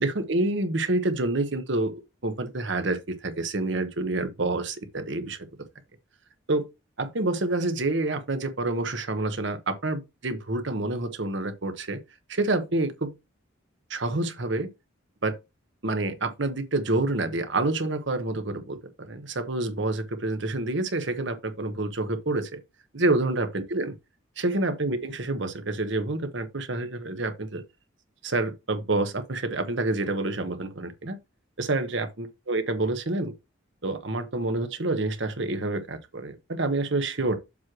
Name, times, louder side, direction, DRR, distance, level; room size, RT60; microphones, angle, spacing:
voice 1, 0.0-5.5 6.5-6.7 7.0-12.0 12.3-13.1 13.9-14.7 15.2-15.4 15.8-22.6 22.9-23.9 24.4-27.6 28.2-31.2 31.6-33.3 33.8-37.3, right 2 dB, 60° right, 1.0 m, -28 dB
7.3 x 3.1 x 6.0 m
head